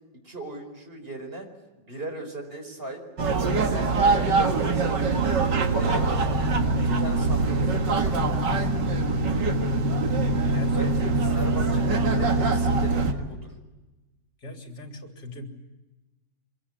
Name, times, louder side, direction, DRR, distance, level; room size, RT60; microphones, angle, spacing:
voice 1, 0.1-1.5 1.8-3.0 3.5-4.3 4.6-8.7 10.7-13.5, right 2 dB, 30° right, 4 dB, 5.1 m, -38 dB
sound 1, 3.2-13.1, right 3 dB, 75° right, 2.4 m, -23 dB
voice 2, 10.3-10.9 14.4-15.5, left 1 dB, 60° left, 2 dB, 4.2 m, -41 dB
25.0 x 22.5 x 9.9 m, 1.1 s
omnidirectional pair, 2.0 m